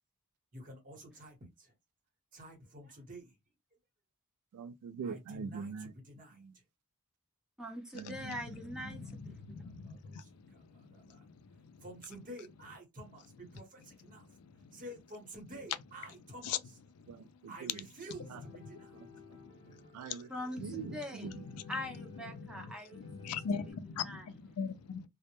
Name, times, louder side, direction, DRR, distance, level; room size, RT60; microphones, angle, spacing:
voice 1, 0.5-1.7 2.3-3.3 5.0-6.6 8.8-9.2 9.6-11.2 11.8-14.4 14.7-16.8 17.5-18.9, right 1 dB, 35° right, 1.0 m, -50 dB
voice 2, 4.5-5.9 6.3-6.6 7.9-8.4 8.8-9.2 17.1-17.9 18.3-18.4 18.9-19.1 19.9-20.3 20.6-21.5, right 6 dB, 90° right, 0.3 m, -44 dB
voice 3, 7.6-9.4 20.3-20.6 20.9-21.3 21.7-23.4 23.7-23.8 24.0-24.3, left 1 dB, 5° right, 0.6 m, -42 dB
voice 4, 8.9-11.3 11.6-11.8 14.4-14.8 16.4-16.6 19.3-19.7 20.7-20.8 22.3-25.1, left 6 dB, 90° left, 0.4 m, -41 dB
Piano, 18.1-23.7, left 5 dB, 25° left, 0.9 m, -57 dB
2.1 x 2.1 x 2.9 m
head